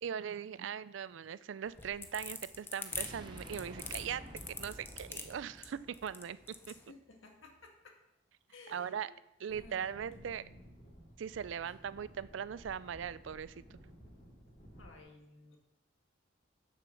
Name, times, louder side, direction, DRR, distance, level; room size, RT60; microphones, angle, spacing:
voice 1, 0.0-6.4 6.7-6.8 8.7-9.1 9.4-10.4 11.2-13.5, right 8 dB, 70° right, 17 dB, 0.4 m, -40 dB
sound 1, 1.7-6.8, left 4 dB, 10° left, 0.6 m, -43 dB
sound 2, 2.9-6.9, equal, 25° right, 0.9 m, -50 dB
voice 2, 6.6-8.0 8.5-9.1 9.5-10.8 14.8-15.6, left 3 dB, 80° left, 3 dB, 1.6 m, -57 dB
sound 3, 9.5-15.0, equal, 35° left, 2.4 m, -56 dB
6.9 x 6.5 x 6.3 m, 0.86 s
head